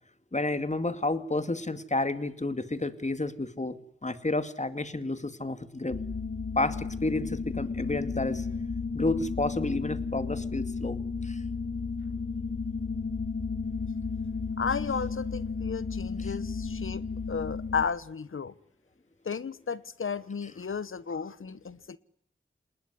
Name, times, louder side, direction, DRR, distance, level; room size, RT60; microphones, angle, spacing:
voice 1, 0.3-3.8 4.0-6.0 6.6-8.5 8.9-11.4, left 2 dB, 35° left, 11 dB, 2.3 m, -30 dB
sound 1, 5.9-17.9, left 4 dB, 75° left, 2.3 m, -33 dB
voice 2, 14.6-18.6 19.2-22.0, left 6 dB, 90° left, 17 dB, 1.1 m, -34 dB
27.5 x 20.0 x 9.8 m, 0.70 s
wide cardioid pair, 60°, 21 cm